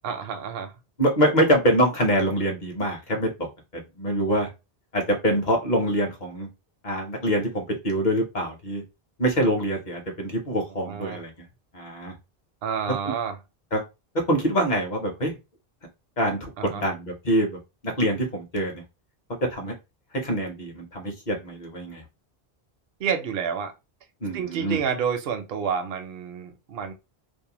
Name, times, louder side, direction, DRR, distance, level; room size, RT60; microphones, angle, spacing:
voice 1, 0.0-0.7 10.8-11.2 12.6-13.4 16.6-16.8 23.0-23.7 24.3-26.9, right 7 dB, 70° right, 0.7 m, -29 dB
voice 2, 1.0-3.5 3.7-4.5 4.9-6.5 6.8-8.8 9.2-11.3 11.7-12.1 13.7-13.8 14.3-15.4 16.2-18.8 19.5-19.7 20.2-22.0 24.2-24.8, equal, 50° left, 0.9 m, -25 dB
2.6 x 2.1 x 2.8 m
omnidirectional pair, 1.1 m